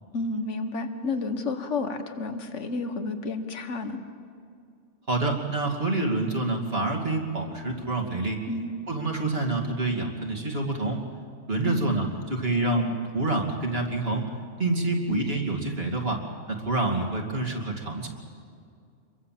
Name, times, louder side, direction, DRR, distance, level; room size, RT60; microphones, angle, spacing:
voice 1, 0.1-4.0 8.5-8.8 11.7-11.8 15.1-15.2, left 3 dB, 75° left, 8 dB, 1.8 m, -31 dB
voice 2, 5.1-8.4 8.9-11.0 11.5-14.3 14.6-16.2 16.5-18.1, right 2 dB, 55° right, 1 dB, 2.8 m, -27 dB
27.0 x 22.5 x 7.6 m, 2.3 s
omnidirectional pair, 1.3 m